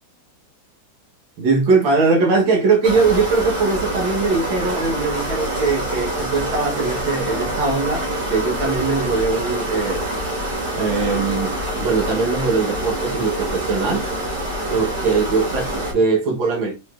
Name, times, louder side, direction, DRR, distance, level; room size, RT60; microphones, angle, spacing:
voice 1, 1.4-8.0 8.3-14.0 14.7-16.7, right 4 dB, 80° right, 1.8 m, -21 dB
sound 1, 2.8-15.9, right 1 dB, 65° right, 2.9 m, -26 dB
4.8 x 4.1 x 2.3 m
omnidirectional pair, 2.0 m